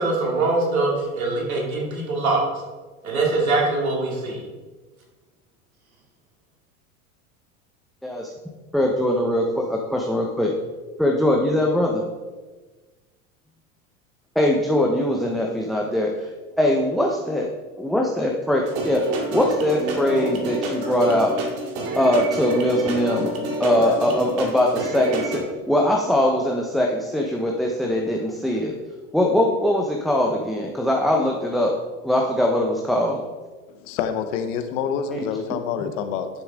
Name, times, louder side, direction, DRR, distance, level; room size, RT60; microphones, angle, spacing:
voice 1, 0.0-2.4 3.0-4.4, right 3 dB, 90° right, -2 dB, 2.8 m, -23 dB
voice 2, 8.7-10.5 11.0-12.0 14.3-16.3 16.6-17.5 17.8-19.0 19.3-21.4 21.9-23.3 23.6-28.8 29.1-31.7 32.0-33.2 35.1-35.2, left 1 dB, ahead, -1 dB, 0.9 m, -21 dB
sound 1, 18.6-25.4, right 1 dB, 60° right, 2.2 m, -28 dB
voice 3, 33.7-36.3, left 7 dB, 65° left, 8 dB, 1.2 m, -27 dB
11.0 x 6.9 x 3.7 m, 1.3 s
hypercardioid pair, 90°, 41 cm